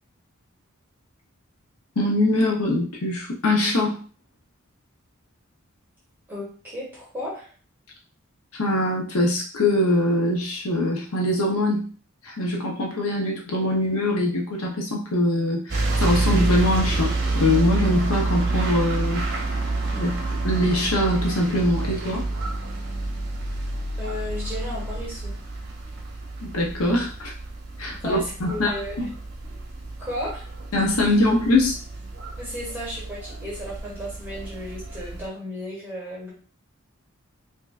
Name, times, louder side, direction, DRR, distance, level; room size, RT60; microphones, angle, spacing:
voice 1, 2.0-4.0 8.6-11.8 12.2-19.3 19.9-20.2 20.4-22.3 26.4-27.3 27.8-29.1 30.7-31.8, left 1 dB, 85° left, -1 dB, 0.8 m, -23 dB
voice 2, 6.3-7.5 24.0-25.4 27.9-29.1 30.0-30.4 32.4-36.3, equal, 10° right, -7 dB, 1.6 m, -34 dB
sound 1, 15.7-35.2, right 2 dB, 50° right, 0.8 m, -28 dB
4.6 x 2.7 x 2.4 m, 0.38 s
head